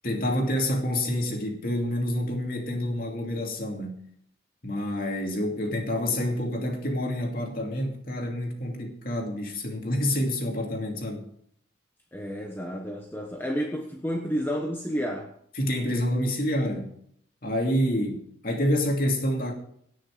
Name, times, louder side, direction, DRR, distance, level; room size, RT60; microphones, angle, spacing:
voice 1, 0.0-4.0 4.6-11.3 15.6-17.0 17.4-19.5, left 1 dB, 50° left, 2.7 m, -28 dB
voice 2, 12.1-15.3, equal, 10° left, 1.0 m, -31 dB
18.0 x 6.5 x 4.9 m
head